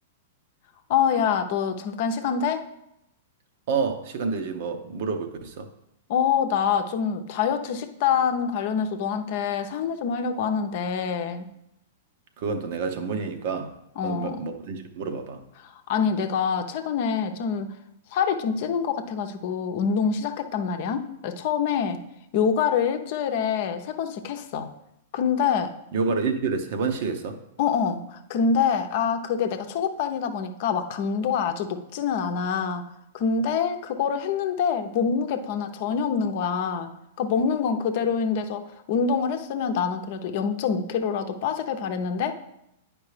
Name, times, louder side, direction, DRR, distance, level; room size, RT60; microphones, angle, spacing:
voice 1, 0.9-2.7 6.1-11.5 14.0-14.4 15.6-17.7 18.1-22.0 22.3-24.7 25.1-25.7 27.6-32.9 33.1-36.9 37.2-38.6 38.9-42.3, left 6 dB, 50° left, 7 dB, 0.7 m, -25 dB
voice 2, 3.7-5.7 12.4-13.7 14.0-15.4 25.9-27.4, right 5 dB, 55° right, 7 dB, 0.9 m, -28 dB
9.5 x 5.1 x 3.3 m, 0.82 s
figure-of-eight pair, 105°, 0 cm